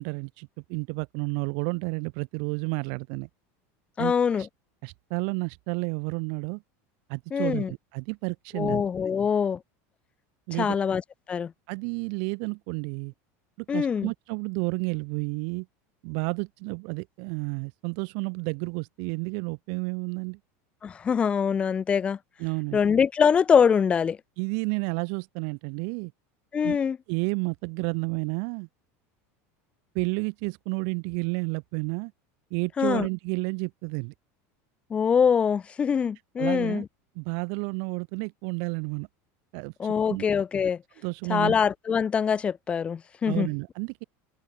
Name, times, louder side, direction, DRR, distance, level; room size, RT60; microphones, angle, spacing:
voice 1, 0.0-3.3 4.0-4.5 4.8-6.6 7.1-8.8 10.5-10.8 11.7-13.1 13.7-15.7 16.0-20.4 22.4-22.8 24.4-26.1 26.6-26.8 27.1-28.7 29.9-32.1 32.5-34.1 36.4-36.8 37.2-39.1 39.5-40.2 41.0-41.5 43.2-44.0, right 40 dB or more, 50° right, 0.4 m, -31 dB
voice 2, 4.0-4.5 7.3-7.7 8.5-9.6 10.6-11.0 11.3-11.5 13.7-14.1 20.8-22.2 22.7-24.2 26.5-27.0 32.8-33.1 34.9-36.8 39.8-40.8 41.3-43.5, left 7 dB, 15° left, 0.5 m, -24 dB
supercardioid pair, 175°, 8 cm